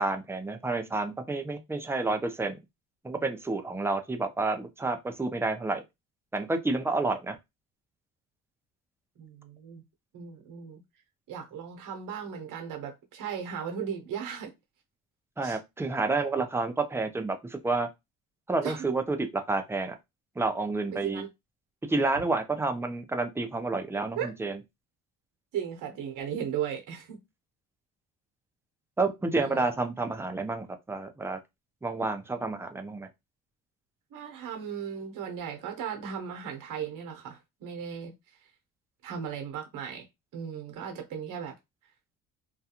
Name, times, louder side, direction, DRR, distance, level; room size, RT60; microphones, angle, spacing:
voice 1, 0.0-2.6 3.0-5.8 6.3-7.4 15.4-17.9 18.5-19.9 20.4-21.2 21.9-24.6 29.0-31.4 31.8-33.1, right 3 dB, 5° right, 0.4 m, -29 dB
voice 2, 9.2-9.8 10.1-10.8 11.3-14.5 15.4-15.6 18.6-18.8 20.9-21.3 24.2-24.3 25.5-27.2 29.3-29.6 34.1-38.1 39.0-40.1 40.3-41.5, right 8 dB, 60° right, 0.9 m, -36 dB
2.3 x 2.2 x 2.8 m
cardioid pair, 85°, 36 cm